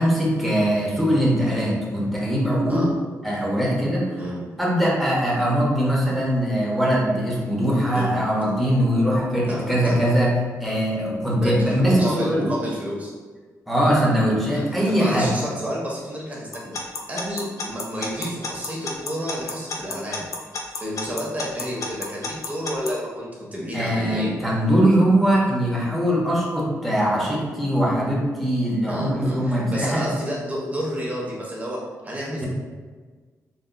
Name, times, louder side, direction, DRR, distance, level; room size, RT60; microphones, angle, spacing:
voice 1, 0.0-2.9 3.2-4.2 4.6-12.5 13.7-15.3 23.7-30.1 32.4-32.5, equal, ahead, -5 dB, 1.0 m, -21 dB
voice 2, 9.5-10.0 11.4-13.1 14.5-20.2 20.8-24.4 28.8-32.4, equal, 25° right, -4 dB, 1.0 m, -30 dB
Alarm / Clock, 16.5-22.9, left 4 dB, 60° left, 0.5 m, -30 dB
3.8 x 2.7 x 2.2 m, 1.4 s
cardioid pair, 80°, 6 cm